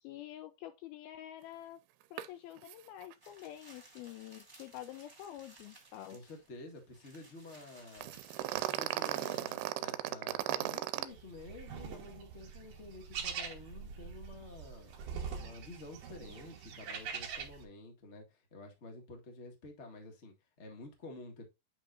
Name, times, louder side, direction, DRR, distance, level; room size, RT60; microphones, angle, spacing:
voice 1, 0.0-1.8 2.1-6.2, left 12 dB, 80° left, 2.2 m, -48 dB
sound 1, 2.2-2.3 2.6-2.8 3.0-3.1 8.0-11.1, right 14 dB, 80° right, 2.5 m, -36 dB
sound 2, 3.2-9.5, right 2 dB, 10° right, 1.5 m, -58 dB
voice 2, 6.1-8.2 8.5-14.9 15.3-21.4, left 2 dB, 55° left, 0.7 m, -50 dB
sound 3, 11.1-17.6, right 6 dB, 65° right, 1.6 m, -44 dB
8.8 x 5.3 x 2.5 m
omnidirectional pair, 4.8 m